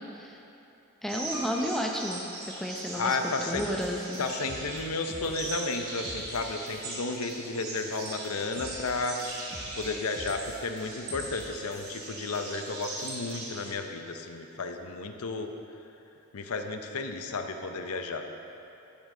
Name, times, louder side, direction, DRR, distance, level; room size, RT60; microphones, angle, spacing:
voice 1, 1.0-2.3 2.6-4.2, equal, ahead, 0 dB, 0.6 m, -32 dB
sound 1, 1.1-13.7, right 2 dB, 75° right, 2.3 m, -40 dB
Piano, 1.3-3.3 3.9-4.6 5.0-5.1 5.3-5.4, right 1 dB, 90° right, 2.1 m, -47 dB
voice 2, 3.0-3.6 4.2-9.2 9.8-15.5 16.3-18.3, left 3 dB, 85° left, 6 dB, 0.7 m, -33 dB
sound 2, 3.5-5.7 6.0-6.9 7.1-10.8 11.1-12.1 12.3-12.4 12.7-13.3, left 1 dB, 30° left, 1.5 m, -47 dB
13.5 x 8.2 x 3.8 m, 2.9 s
head